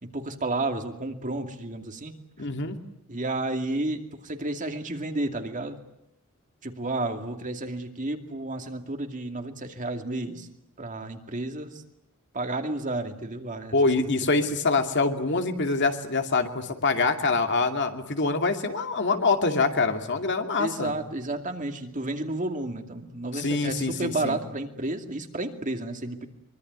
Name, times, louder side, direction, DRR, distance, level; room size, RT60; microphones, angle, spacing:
voice 1, 0.0-2.1 3.1-5.8 6.6-10.5 10.8-11.8 12.3-13.7 20.6-26.3, right 2 dB, 35° right, 5 dB, 2.5 m, -31 dB
voice 2, 2.4-2.8 13.7-20.9 23.3-24.4, left 3 dB, 55° left, 5 dB, 2.5 m, -25 dB
24.5 x 24.0 x 9.6 m, 0.83 s
head